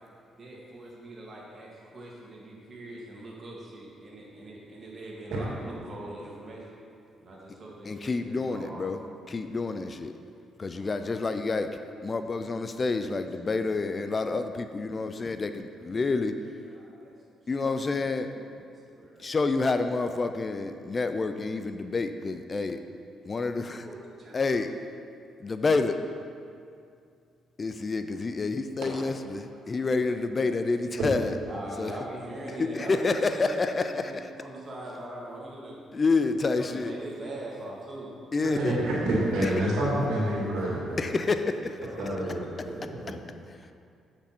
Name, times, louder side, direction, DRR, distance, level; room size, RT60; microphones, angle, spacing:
voice 1, 0.4-6.7 7.2-8.9 10.7-11.2 13.8-14.5 14.9-15.0 16.7-17.1 18.2-19.4 23.8-24.4 29.5-29.9 31.5-33.7 34.0-35.8 36.5-38.1 42.2-42.5, right 1 dB, 35° right, -4 dB, 2.0 m, -42 dB
voice 2, 7.8-9.0 9.3-10.1 10.6-11.7 12.0-16.3 17.5-18.3 19.2-22.8 23.3-23.9 24.3-24.7 25.4-26.0 27.6-31.3 31.8-31.9 32.6-34.3 35.9-37.0 38.3-38.8 39.4-39.5 41.0-41.6 43.1-43.2, left 3 dB, 35° left, 9 dB, 0.4 m, -28 dB
voice 3, 38.4-41.1 42.0-42.4 42.7-43.1, right 1 dB, 85° right, -5 dB, 2.0 m, -28 dB
8.0 x 6.0 x 4.3 m, 2.4 s
cardioid pair, 90°, 0 cm